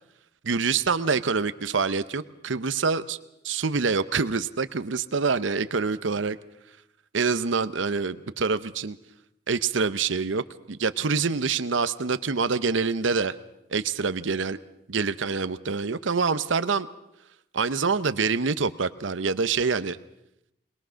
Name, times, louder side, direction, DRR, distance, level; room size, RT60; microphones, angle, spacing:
voice 1, 0.4-3.2 3.4-6.4 7.1-9.0 9.5-13.4 13.7-14.6 14.9-16.9 17.5-20.0, right 5 dB, 85° right, 13 dB, 0.8 m, -26 dB
21.5 x 21.5 x 6.3 m, 0.83 s
head